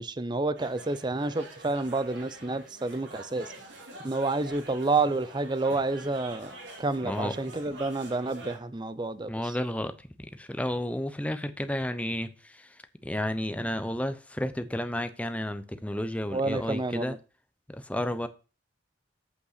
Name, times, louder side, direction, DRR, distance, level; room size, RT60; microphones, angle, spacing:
voice 1, 0.0-3.5 4.0-6.5 6.8-9.3 16.3-17.2, right 3 dB, 25° right, 0.6 m, -29 dB
sound 1, 0.5-8.6, right 1 dB, 90° right, 3.2 m, -46 dB
voice 2, 7.0-7.6 9.3-9.9 10.2-12.8 13.0-17.2 17.7-18.3, left 1 dB, 10° left, 0.7 m, -32 dB
8.3 x 5.3 x 6.6 m
head